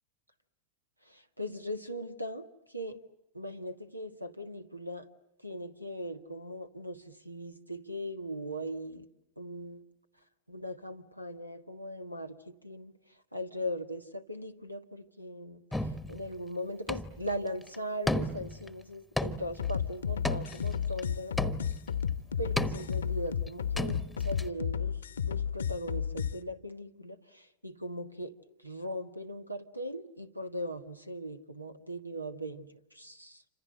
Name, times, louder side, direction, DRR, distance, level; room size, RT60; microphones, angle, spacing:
voice 1, 1.1-3.0 3.3-5.1 5.4-9.1 9.4-9.8 10.5-12.9 13.3-21.8 22.4-28.3 28.6-33.4, equal, 90° right, 10 dB, 1.6 m, -39 dB
sound 1, 15.7-16.3 16.9-17.3 17.6-17.8 18.1-18.7 19.2-19.7 20.2-21.0 21.4-21.9 22.6-23.1 23.5-23.6 23.8-24.4, left 1 dB, 5° left, 1.2 m, -34 dB
sound 2, 19.6-26.3, left 8 dB, 70° left, 1.1 m, -32 dB
29.0 x 26.5 x 7.7 m, 0.88 s
figure-of-eight pair, 90°, 0 cm